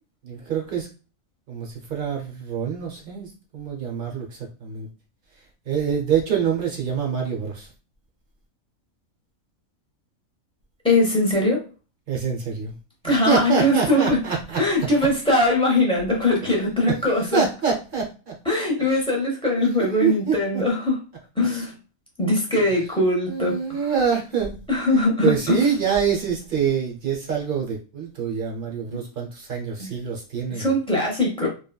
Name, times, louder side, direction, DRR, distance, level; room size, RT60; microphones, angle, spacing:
voice 1, 0.2-0.9 1.5-4.9 5.7-7.7 12.1-12.8 13.0-14.6 16.4-16.5 16.9-17.0 17.3-18.4 18.8-19.0 19.8-20.6 23.3-24.6 25.2-30.7, right 7 dB, 50° right, 0 dB, 0.7 m, -25 dB
voice 2, 10.8-11.7 13.0-14.2 14.6-17.4 18.5-21.0 21.4-21.7 22.2-23.8 24.7-25.6 28.9-29.0 29.8-29.9 30.5-31.5, left 2 dB, 5° left, -3 dB, 0.5 m, -21 dB
3.2 x 2.2 x 2.2 m, 0.34 s
omnidirectional pair, 1.5 m